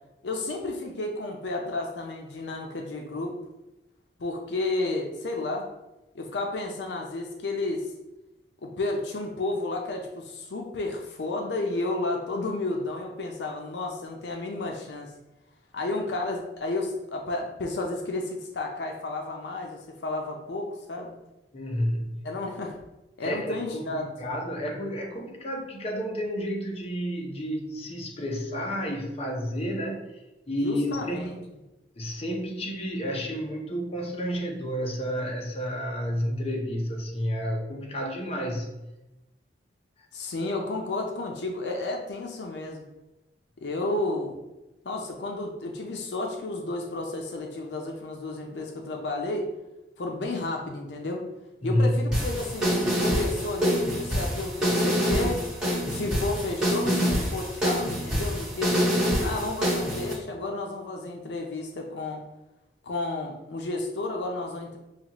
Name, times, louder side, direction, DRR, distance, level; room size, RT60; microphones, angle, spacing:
voice 1, 0.2-3.4 4.2-5.7 6.1-7.9 8.6-15.1 15.7-21.1 22.2-22.7 23.2-24.1 30.6-31.4 40.1-42.8 43.6-44.4 44.8-49.5 50.0-51.2 51.6-55.4 55.9-58.8 59.2-62.2 62.8-64.8, left 2 dB, 75° left, 2 dB, 0.5 m, -32 dB
voice 2, 21.5-22.2 23.2-30.1 30.5-31.3 32.0-38.7 51.6-51.9, equal, 35° left, 0 dB, 0.7 m, -30 dB
sound 1, 52.1-60.1, equal, 5° right, 1.5 m, -26 dB
5.7 x 2.4 x 2.9 m, 1.0 s
head